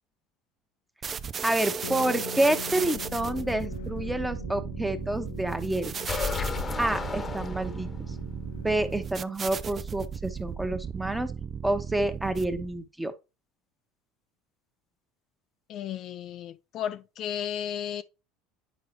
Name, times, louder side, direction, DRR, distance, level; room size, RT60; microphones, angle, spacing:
sound 1, 1.0-12.8, right 7 dB, 35° right, 0.4 m, -36 dB
voice 1, 1.4-5.9 6.8-7.9 8.6-11.3 11.6-13.1, right 1 dB, 10° right, 1.1 m, -28 dB
sound 2, 1.8-9.3, left 7 dB, 85° left, 0.8 m, -43 dB
sound 3, 6.0-8.1, left 4 dB, 30° left, 1.0 m, -33 dB
voice 2, 15.7-18.0, left 9 dB, 55° left, 0.4 m, -34 dB
9.4 x 4.8 x 3.0 m
hypercardioid pair, 75°, 0 cm